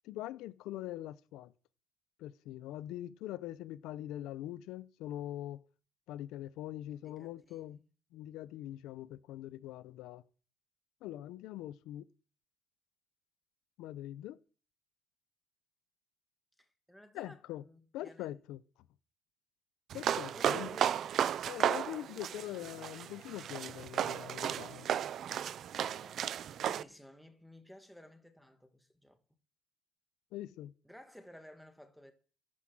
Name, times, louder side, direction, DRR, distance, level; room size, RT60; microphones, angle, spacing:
voice 1, 0.0-1.5 2.2-5.6 6.1-7.8 8.1-10.2 11.0-12.1 13.8-14.4 17.1-17.6 17.9-18.6 19.9-20.8 21.5-24.9 30.3-30.7, left 14 dB, 80° left, 0.7 m, -43 dB
voice 2, 6.9-7.9 16.6-18.3 20.3-21.1 25.8-29.2 30.8-32.1, equal, ahead, 1.8 m, -56 dB
sound 1, 19.9-26.8, right 9 dB, 50° right, 0.6 m, -34 dB
12.5 x 11.0 x 6.2 m
cardioid pair, 135°, 0 cm